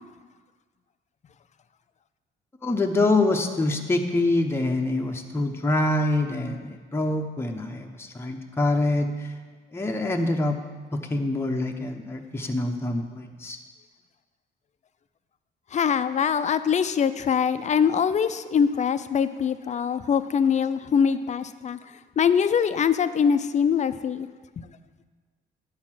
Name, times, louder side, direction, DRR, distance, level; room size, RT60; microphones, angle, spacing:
voice 1, 2.6-9.3 9.7-10.6 10.9-13.6, left 2 dB, 10° left, 2 dB, 0.7 m, -25 dB
voice 2, 15.7-21.8 22.2-24.3 24.6-24.7, left 7 dB, 35° left, 12 dB, 0.5 m, -23 dB
9.6 x 4.4 x 7.4 m, 1.5 s
cardioid pair, 90°, 20 cm